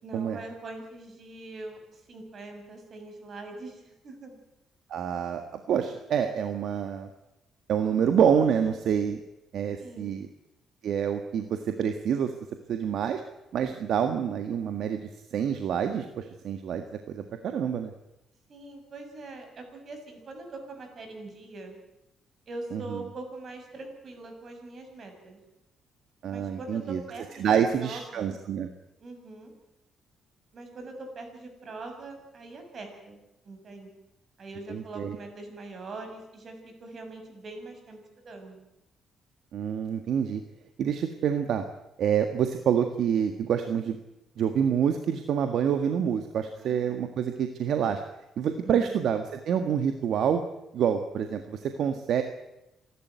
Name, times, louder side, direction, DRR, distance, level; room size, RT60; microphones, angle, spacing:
voice 1, 0.0-4.4 9.7-10.1 18.5-21.8 22.5-25.4 26.3-28.4 29.0-29.5 30.5-33.2 33.4-33.9 34.4-38.7 46.6-47.0 48.6-49.0, right 2 dB, 50° right, 5 dB, 6.6 m, -42 dB
voice 2, 4.9-5.4 5.7-7.1 7.7-9.2 9.5-10.3 10.8-12.3 12.7-13.2 13.5-17.9 22.7-23.0 26.2-27.0 27.4-28.7 34.7-35.1 39.5-40.4 40.8-41.6 42.0-44.0 44.4-48.0 48.4-50.4 50.7-52.2, right 8 dB, 70° right, 7 dB, 1.7 m, -27 dB
27.5 x 12.5 x 9.5 m, 0.91 s
cardioid pair, 90°, 0 cm